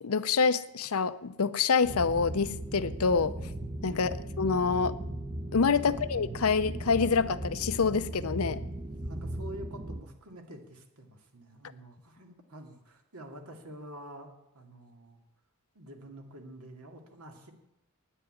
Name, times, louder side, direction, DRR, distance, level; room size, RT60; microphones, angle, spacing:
voice 1, 0.0-3.3 3.8-4.1 4.4-4.9 5.5-8.6, left 5 dB, 80° left, 14 dB, 0.7 m, -26 dB
sound 1, 1.8-10.0, right 1 dB, 25° right, 0.7 m, -38 dB
voice 2, 3.9-4.2 5.8-6.1 9.0-15.2 15.7-17.5, right 1 dB, 85° right, 3 dB, 2.3 m, -48 dB
10.0 x 9.6 x 9.8 m, 0.88 s
head